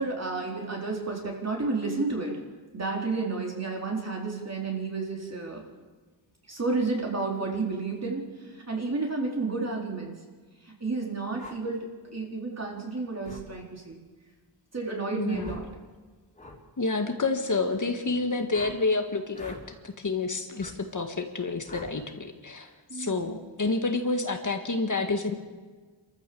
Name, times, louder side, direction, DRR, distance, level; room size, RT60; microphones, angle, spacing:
voice 1, 0.0-2.4 2.7-5.6 6.5-10.2 10.6-11.9 12.1-14.0 14.7-15.7 22.9-23.4, right 3 dB, 35° right, -1 dB, 4.1 m, -31 dB
sound 1, 11.4-11.6 13.2-13.5 15.4-15.7 16.3-16.6 18.5-18.8 19.3-19.6 20.6-20.8 21.7-21.9, left 2 dB, 15° left, 4.0 m, -43 dB
voice 2, 15.2-15.5 16.8-19.5 19.8-25.3, left 3 dB, 45° left, 4 dB, 1.9 m, -29 dB
27.5 x 14.0 x 7.0 m, 1.4 s
wide cardioid pair, 95°, 44 cm